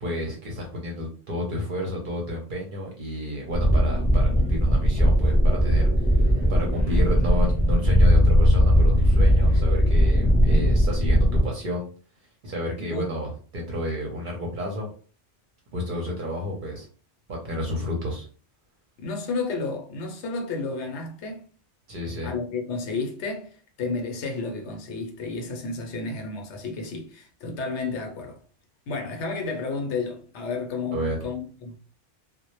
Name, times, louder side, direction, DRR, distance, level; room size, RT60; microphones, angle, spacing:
voice 1, 0.0-6.1 6.5-11.9 12.4-14.9 15.7-16.9 17.3-18.3 21.9-22.3 30.9-31.2, left 1 dB, 55° right, 0.6 m, -31 dB
sound 1, 3.5-11.5, equal, 15° right, 0.3 m, -19 dB
voice 2, 12.8-13.1 19.0-21.4 22.2-28.4 28.9-31.8, left 3 dB, 75° left, 0.9 m, -31 dB
2.0 x 2.0 x 2.9 m
omnidirectional pair, 1.2 m